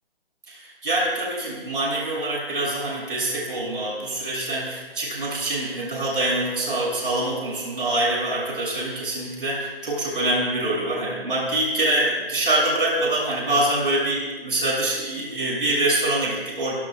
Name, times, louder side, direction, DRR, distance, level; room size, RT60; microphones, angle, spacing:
voice 1, 0.5-16.8, right 1 dB, 60° right, -3 dB, 6.9 m, -25 dB
27.5 x 18.5 x 2.4 m, 1.2 s
figure-of-eight pair, 145°, 31 cm